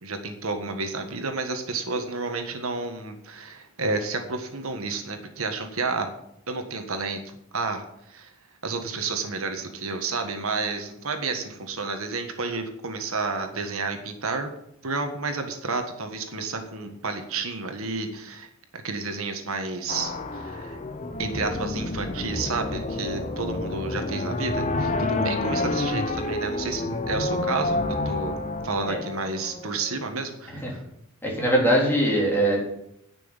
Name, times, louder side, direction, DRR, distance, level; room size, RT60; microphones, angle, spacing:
voice 1, 0.0-6.1 6.5-7.2 7.5-8.3 8.6-14.5 14.8-18.5 18.7-20.8 21.2-28.4 28.6-30.8, right 3 dB, 75° right, 5 dB, 1.6 m, -31 dB
sound 1, 19.9-29.9, left 2 dB, 35° left, 0.9 m, -29 dB
voice 2, 31.2-32.7, right 1 dB, 10° left, -3 dB, 3.4 m, -21 dB
10.5 x 6.2 x 9.0 m, 0.77 s
head